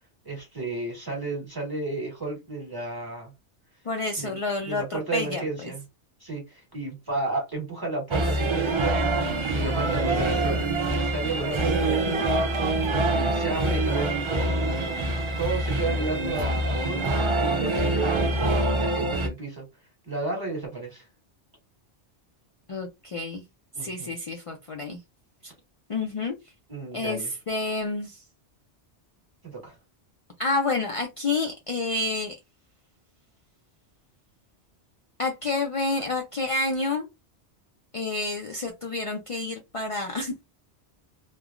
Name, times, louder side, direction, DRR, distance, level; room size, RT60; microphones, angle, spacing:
voice 1, 0.2-3.3 4.2-5.8 6.2-12.3 13.1-14.7 15.4-19.6 20.0-21.0 23.7-24.1 26.7-27.3 29.4-29.7, right 3 dB, 20° right, 1.5 m, -33 dB
voice 2, 3.8-5.7 22.7-23.4 23.8-25.0 25.9-26.3 26.9-28.2 30.4-32.4 35.2-37.0 37.9-40.4, left 3 dB, 60° left, 0.3 m, -29 dB
sound 1, 8.1-19.3, right 2 dB, 40° right, 0.4 m, -25 dB
3.1 x 2.1 x 2.4 m
omnidirectional pair, 1.2 m